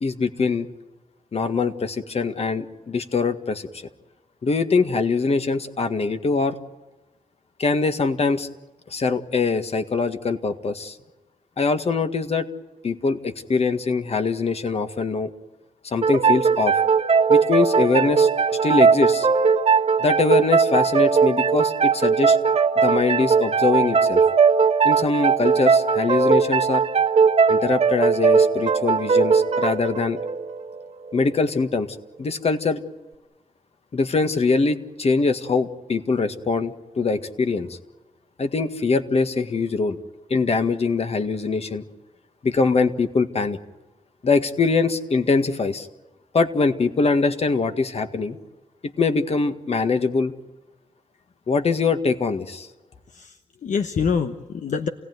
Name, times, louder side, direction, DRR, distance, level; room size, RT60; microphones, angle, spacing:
voice 1, 0.0-0.7 1.3-3.7 4.4-6.6 7.6-8.5 8.9-11.0 11.6-12.5 12.8-15.3 15.8-16.8 17.3-19.3 20.0-22.4 22.8-24.2 24.8-26.8 27.5-30.2 31.1-31.9 32.2-32.8 33.9-37.8 38.4-40.0 40.3-41.8 42.4-43.6 44.2-45.9 46.3-48.4 48.8-50.3 51.5-52.7, left 4 dB, 55° left, 8 dB, 1.8 m, -23 dB
sound 1, 16.0-31.4, right 5 dB, 60° right, 1.5 m, -19 dB
voice 2, 53.1-54.9, left 6 dB, 80° left, 7 dB, 1.1 m, -26 dB
28.5 x 18.0 x 9.4 m, 1.1 s
wide cardioid pair, 95°, 13 cm